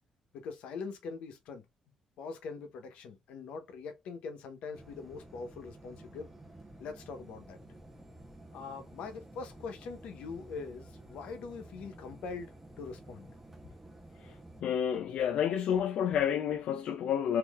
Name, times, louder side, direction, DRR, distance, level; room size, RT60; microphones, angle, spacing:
voice 1, 0.3-1.6 2.2-6.3 6.8-7.6 8.5-12.5 12.8-13.3, left 4 dB, 80° left, 0.9 m, -42 dB
sound 1, 4.7-14.6, right 1 dB, 10° right, 0.7 m, -52 dB
voice 2, 14.6-17.4, left 9 dB, 65° left, 0.4 m, -30 dB
3.7 x 2.7 x 2.3 m
cardioid pair, 170°, 2 cm